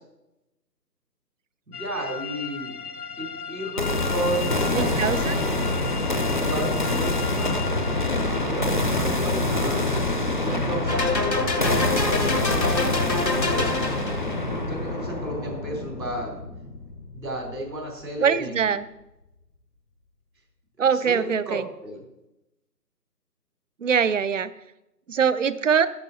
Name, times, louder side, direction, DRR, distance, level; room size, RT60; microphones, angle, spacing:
sound 1, 1.7-13.3, left 6 dB, 60° left, 0.9 m, -39 dB
voice 1, 1.7-2.8 3.2-5.9 6.4-7.6 8.2-10.0 10.4-11.3 12.9-13.9 14.7-16.3 17.1-18.7 20.8-22.0, right 1 dB, 80° right, 0 dB, 3.8 m, -33 dB
sound 2, 3.8-17.7, left 2 dB, 30° left, 0.6 m, -26 dB
voice 2, 4.8-5.3 18.2-18.8 20.8-21.6 23.8-24.5 25.1-25.9, right 7 dB, 50° right, 15 dB, 0.6 m, -22 dB
sound 3, 10.9-14.4, left 2 dB, 90° left, 1.8 m, -26 dB
10.5 x 6.7 x 5.3 m, 0.91 s
figure-of-eight pair, 150°, 50 cm